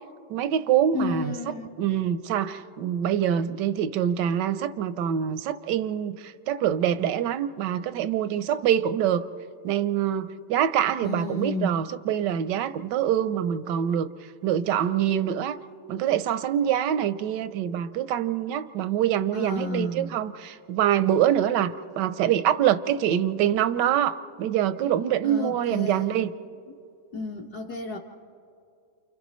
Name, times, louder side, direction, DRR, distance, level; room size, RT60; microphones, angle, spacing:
voice 1, 0.3-1.4 1.8-9.3 9.6-14.1 14.4-15.6 15.9-26.3, right 10 dB, 70° right, 13 dB, 1.1 m, -25 dB
voice 2, 0.9-1.7 11.0-11.8 19.3-20.1 25.2-26.3 27.1-28.0, left 2 dB, 55° left, -3 dB, 1.6 m, -32 dB
29.5 x 29.0 x 3.1 m, 2.4 s
omnidirectional pair, 2.3 m